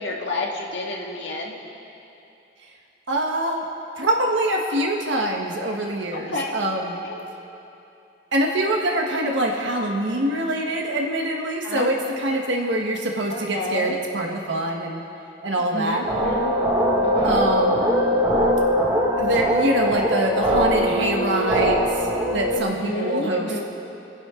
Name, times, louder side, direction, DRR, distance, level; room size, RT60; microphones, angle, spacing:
voice 1, 0.0-1.6 6.1-6.6 7.0-7.1 11.6-11.9 13.3-14.0 15.7-16.6 17.0-17.5 22.5-23.6, left 1 dB, 75° left, -1 dB, 2.0 m, -30 dB
voice 2, 3.1-3.7 4.0-7.0 8.3-15.0 15.4-16.0 17.2-17.8 19.2-22.0 22.3-23.6, right 1 dB, 80° right, 0 dB, 1.4 m, -24 dB
sound 1, 16.0-22.6, equal, 20° right, 1.9 m, -21 dB
28.0 x 11.0 x 3.8 m, 2.8 s
head